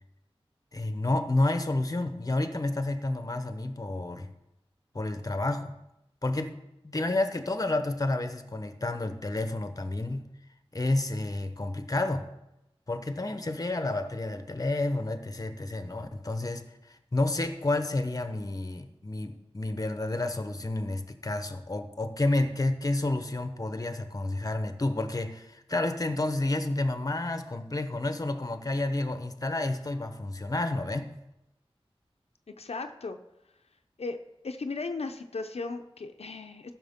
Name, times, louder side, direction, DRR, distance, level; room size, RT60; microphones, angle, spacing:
voice 1, 0.7-4.3 4.9-5.7 6.2-6.6 6.8-10.3 10.7-12.3 12.9-31.1, left 2 dB, 35° left, 9 dB, 0.9 m, -30 dB
voice 2, 32.5-33.2 34.0-34.2 34.4-36.7, left 3 dB, 85° left, 6 dB, 0.6 m, -36 dB
14.5 x 6.2 x 3.7 m, 0.88 s
wide cardioid pair, 55°, 10 cm